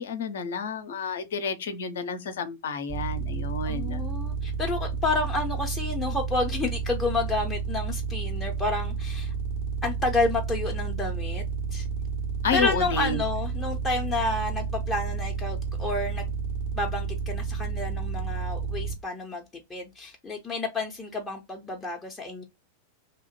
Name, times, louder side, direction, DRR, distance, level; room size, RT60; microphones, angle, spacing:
voice 1, 0.0-4.1 12.4-13.2, left 5 dB, 60° left, 0.5 m, -30 dB
sound 1, 2.9-19.0, right 5 dB, 50° right, 0.9 m, -31 dB
voice 2, 3.7-9.3 9.8-11.4 11.7-11.9 12.5-16.3 16.7-19.4 19.7-22.4, left 2 dB, 10° left, 0.5 m, -30 dB
2.8 x 2.1 x 2.8 m
figure-of-eight pair, 90°, 0 cm